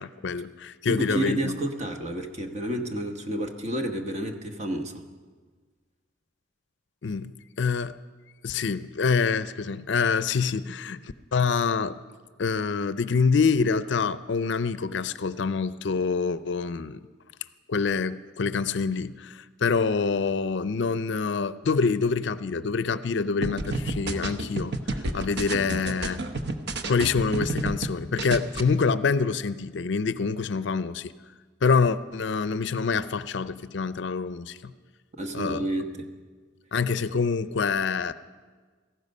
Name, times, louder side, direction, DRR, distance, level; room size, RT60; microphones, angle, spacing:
voice 1, 0.0-1.6 7.0-7.3 7.6-8.0 8.4-12.0 12.4-17.0 17.7-24.8 25.1-26.2 26.9-31.1 31.6-34.7 35.3-35.6 36.7-38.1, left 5 dB, 60° left, 14 dB, 0.5 m, -26 dB
voice 2, 0.9-5.0 35.2-36.1, right 1 dB, 35° right, 5 dB, 1.2 m, -30 dB
sound 1, 23.4-27.9 28.2-28.6, right 2 dB, 55° right, 0.9 m, -30 dB
17.5 x 14.5 x 5.4 m, 1.5 s
head